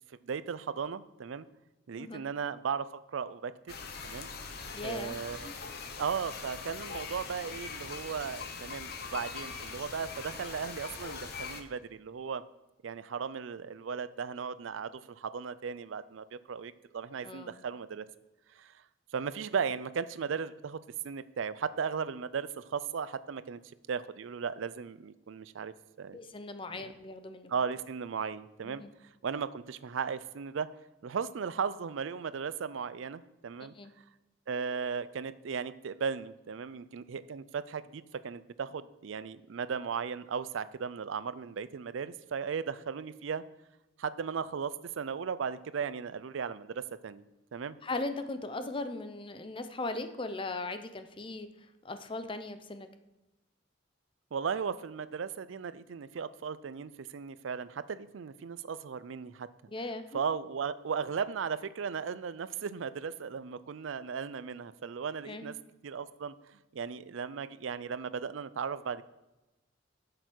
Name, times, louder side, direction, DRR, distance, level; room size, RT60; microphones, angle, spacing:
voice 1, 0.1-1.5 1.9-3.5 4.0-4.3 4.8-5.6 6.0-12.4 12.8-18.1 18.5-18.7 19.1-23.6 23.9-26.2 26.8-26.9 27.5-28.8 29.2-30.7 31.0-33.7 34.5-43.4 44.0-47.2 47.5-47.8 54.3-59.5 60.1-65.5 65.8-66.3 66.7-69.0, right 6 dB, 80° right, 15 dB, 0.4 m, -36 dB
sound 1, 3.7-11.6, left 5 dB, 55° left, 1.0 m, -42 dB
voice 2, 4.7-5.5 17.2-17.5 26.1-27.5 28.6-28.9 33.8-33.9 47.8-51.5 51.8-52.9 59.7-60.2 65.3-65.5, left 2 dB, 25° left, 9 dB, 0.6 m, -38 dB
8.1 x 6.8 x 6.2 m, 1.0 s
head